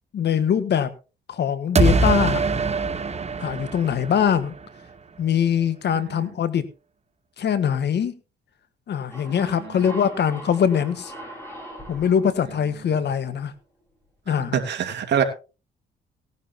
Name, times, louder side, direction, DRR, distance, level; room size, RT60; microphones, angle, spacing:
voice 1, 0.1-0.9 1.3-2.4 3.4-4.5 5.2-6.6 7.4-8.1 8.9-11.1 11.9-13.5 14.3-14.6, left 8 dB, 60° left, 13 dB, 1.5 m, -22 dB
sound 1, 1.8-4.7, right 3 dB, 35° right, 1.2 m, -22 dB
sound 2, 9.1-13.6, right 1 dB, 10° left, 7.4 m, -41 dB
voice 2, 9.3-9.8 14.5-15.2, right 8 dB, 60° right, 3 dB, 2.7 m, -26 dB
17.5 x 11.0 x 2.9 m, 0.32 s
cardioid pair, 90°, 20 cm